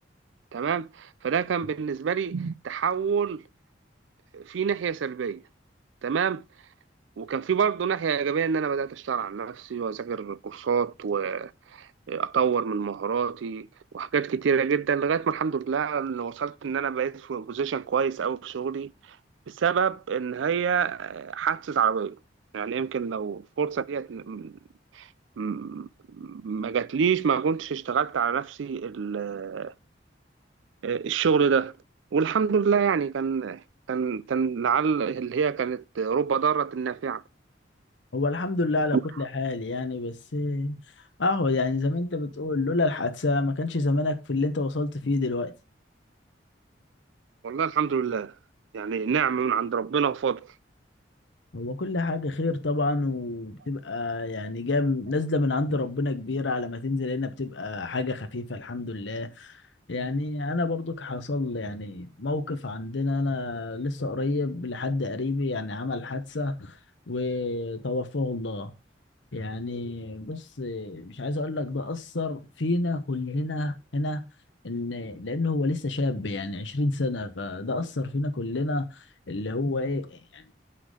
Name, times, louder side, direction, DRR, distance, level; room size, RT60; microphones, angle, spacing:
voice 1, 0.5-3.4 4.3-5.4 6.0-6.4 7.2-13.7 13.9-18.9 19.5-22.2 22.5-24.5 24.9-25.1 25.4-29.7 30.8-31.7 32.1-33.6 33.9-37.2 38.9-39.0 47.4-48.3 48.7-50.5, right 6 dB, 85° right, 0.4 m, -27 dB
voice 2, 38.1-40.8 41.2-45.5 51.5-59.5 59.9-66.8 67.1-68.7 69.3-74.2 74.6-80.4, left 2 dB, 75° left, 1.0 m, -29 dB
8.1 x 5.8 x 5.0 m
head